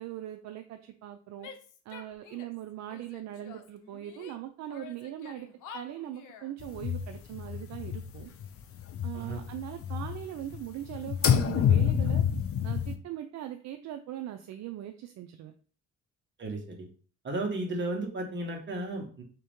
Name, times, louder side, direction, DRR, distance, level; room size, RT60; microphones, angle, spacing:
voice 1, 0.0-1.5 1.9-5.5 5.7-8.3 9.0-12.2 12.6-15.5, right 12 dB, 65° right, 7 dB, 0.4 m, -40 dB
Female speech woman speaking / Yell, 1.4-2.6 2.9-4.4 4.7-6.5, left 7 dB, 85° left, 0.7 m, -49 dB
sound 1, 6.6-8.5 8.8-10.6 10.8-13.0, left 8 dB, 50° left, 0.5 m, -28 dB
voice 2, 16.4-16.9 17.2-19.2, right 2 dB, 40° right, 1 dB, 1.3 m, -34 dB
3.6 x 2.9 x 3.5 m, 0.43 s
cardioid pair, 90°, 30 cm